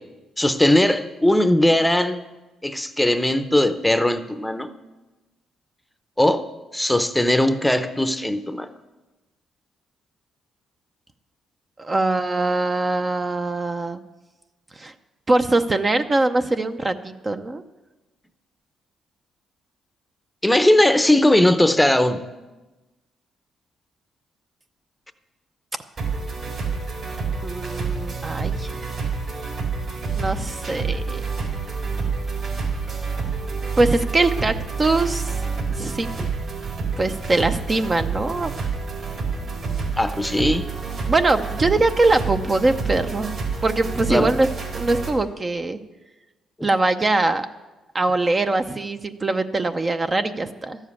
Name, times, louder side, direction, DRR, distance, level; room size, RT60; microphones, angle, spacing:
voice 1, 0.4-2.2 2.6-4.7 6.2-6.4 6.7-8.7 20.4-22.3 36.2-36.3 40.0-40.7 44.1-44.3 46.6-46.7, left 1 dB, 5° left, 10 dB, 0.7 m, -19 dB
voice 2, 11.8-14.0 14.8-14.9 15.3-17.6 27.4-28.9 30.2-31.2 33.8-35.3 35.8-36.1 37.0-38.5 41.1-43.3 43.6-44.5 44.7-45.8 46.6-47.5 47.9-50.8, right 2 dB, 30° right, 8 dB, 0.6 m, -22 dB
sound 1, 26.0-45.1, right 4 dB, 50° right, 4.2 m, -28 dB
13.0 x 7.3 x 8.4 m, 1.1 s
cardioid pair, 90°, 0 cm